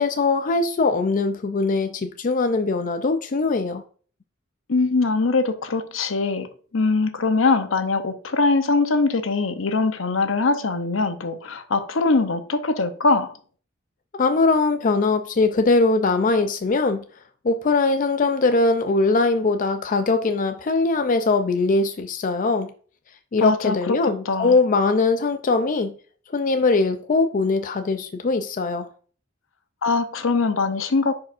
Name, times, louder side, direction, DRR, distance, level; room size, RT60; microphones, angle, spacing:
voice 1, 0.0-3.8 14.2-17.0 17.4-22.7 23.3-26.0 26.3-28.9, left 3 dB, 40° left, 0.4 m, -21 dB
voice 2, 4.7-6.5 6.7-13.3 23.3-24.6 29.8-31.1, left 3 dB, 75° left, 0.8 m, -22 dB
10.0 x 4.9 x 2.5 m
head